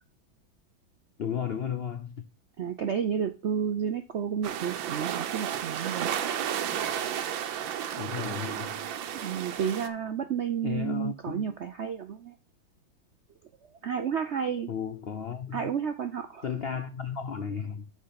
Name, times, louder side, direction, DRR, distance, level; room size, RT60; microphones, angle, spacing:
voice 1, 1.2-2.2 8.0-8.8 10.6-11.5 14.7-15.7 16.4-17.9, left 7 dB, 70° left, 0.5 m, -34 dB
voice 2, 2.6-6.1 9.2-12.3 13.8-14.7 15.5-16.4, right 7 dB, 70° right, 0.6 m, -31 dB
sound 1, 4.4-9.9, right 9 dB, 85° right, 1.6 m, -32 dB
8.6 x 4.9 x 5.8 m
omnidirectional pair, 2.1 m